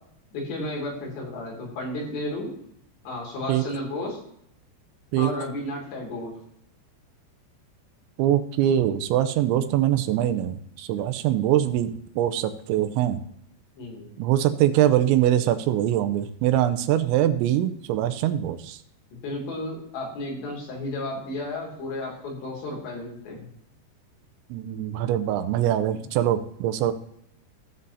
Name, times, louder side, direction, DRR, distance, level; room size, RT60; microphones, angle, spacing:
voice 1, 0.3-2.5 3.0-4.2 5.2-6.3 13.8-14.1 19.2-23.5, left 1 dB, 70° left, -1 dB, 4.7 m, -33 dB
voice 2, 8.2-13.2 14.2-18.8 24.5-26.9, right 12 dB, 85° right, 9 dB, 3.0 m, -23 dB
16.0 x 7.6 x 2.7 m, 0.71 s
omnidirectional pair, 5.2 m